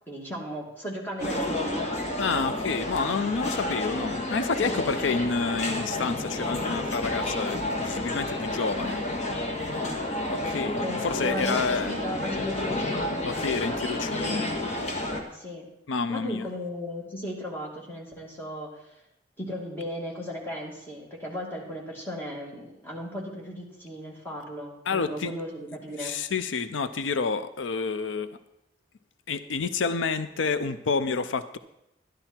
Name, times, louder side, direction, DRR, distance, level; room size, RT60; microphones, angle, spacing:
voice 1, 0.1-2.0 10.8-13.2 15.3-15.7 16.1-18.9 19.4-26.1, equal, 10° left, -3 dB, 2.4 m, -36 dB
sound 1, 1.2-15.2, left 1 dB, 35° left, 1.6 m, -30 dB
voice 2, 2.2-9.0 10.2-12.0 13.2-14.5 15.9-16.5 24.9-25.3 26.0-28.3 29.3-31.6, left 4 dB, 80° left, 12 dB, 0.5 m, -29 dB
12.5 x 10.5 x 4.4 m, 0.85 s
head